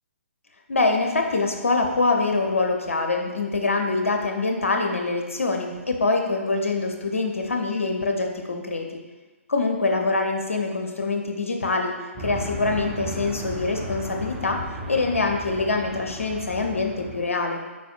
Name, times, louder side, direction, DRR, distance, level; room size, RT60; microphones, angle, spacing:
voice 1, 0.7-9.0 9.5-14.6 14.9-17.6, left 3 dB, 70° left, 2 dB, 0.6 m, -24 dB
sound 1, 12.1-17.2, equal, 20° right, 0.8 m, -35 dB
4.5 x 4.2 x 2.4 m, 1.3 s
figure-of-eight pair, 130°, 7 cm